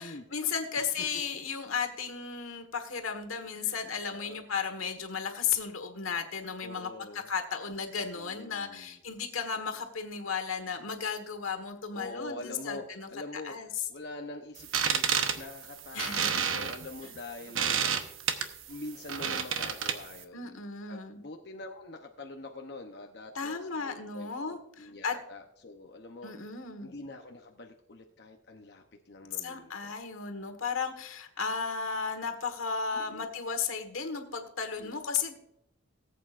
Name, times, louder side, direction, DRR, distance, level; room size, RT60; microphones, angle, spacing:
voice 1, 0.0-13.7 15.9-16.4 20.3-21.1 23.3-25.2 26.2-26.9 29.4-35.3, left 6 dB, 85° left, 6 dB, 1.5 m, -35 dB
voice 2, 0.8-1.1 3.5-3.8 4.1-4.4 6.6-7.3 8.1-9.0 11.9-17.9 18.7-20.6 20.9-29.9 32.9-33.3 34.8-35.0, left 2 dB, 50° left, 2 dB, 0.8 m, -45 dB
sound 1, 14.6-20.2, right 7 dB, 75° right, 1.0 m, -30 dB
18.5 x 8.3 x 2.5 m, 0.77 s
head